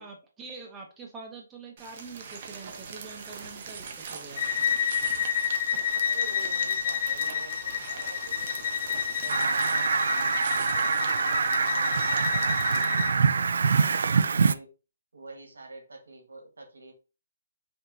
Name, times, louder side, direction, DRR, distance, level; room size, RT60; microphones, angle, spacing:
voice 1, 0.0-4.4 11.0-11.1, right 4 dB, 10° right, 0 dB, 0.9 m, -45 dB
sound 1, 1.8-12.8, right 5 dB, 35° right, 0.7 m, -42 dB
Bowed string instrument, 4.4-13.2, left 8 dB, 50° left, 0.7 m, -30 dB
voice 2, 6.0-10.3 10.8-14.7 15.1-16.9, right 2 dB, 90° right, 2 dB, 1.8 m, -47 dB
Fowl, 9.3-14.5, right 5 dB, 65° right, 0.3 m, -25 dB
5.6 x 2.9 x 2.7 m, 0.31 s
hypercardioid pair, 170°, 0 cm